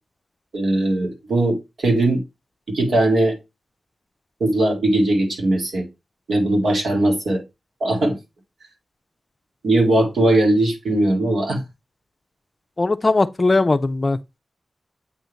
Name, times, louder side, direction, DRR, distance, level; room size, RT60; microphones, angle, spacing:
voice 1, 0.5-2.2 2.7-3.4 4.4-5.9 6.3-7.4 7.8-8.2 9.6-11.6, right 1 dB, 80° right, 2.1 m, -19 dB
voice 2, 12.8-14.2, left 3 dB, 30° left, 0.5 m, -19 dB
8.1 x 3.5 x 4.0 m
wide cardioid pair, 140°, 0 cm